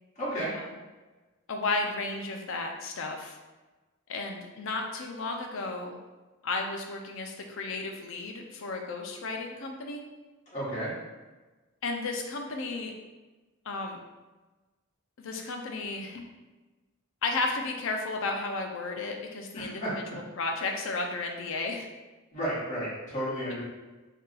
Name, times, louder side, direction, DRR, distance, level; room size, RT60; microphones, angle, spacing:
voice 1, 0.1-0.5 10.5-10.9 19.5-20.2 22.3-23.6, equal, 35° left, -10 dB, 1.2 m, -32 dB
voice 2, 1.5-3.4 4.1-6.0 6.4-10.0 11.8-12.9 13.7-14.0 15.2-16.3 17.2-19.8 20.4-21.9, left 3 dB, 60° left, 2 dB, 0.5 m, -33 dB
2.7 x 2.3 x 3.9 m, 1.2 s
head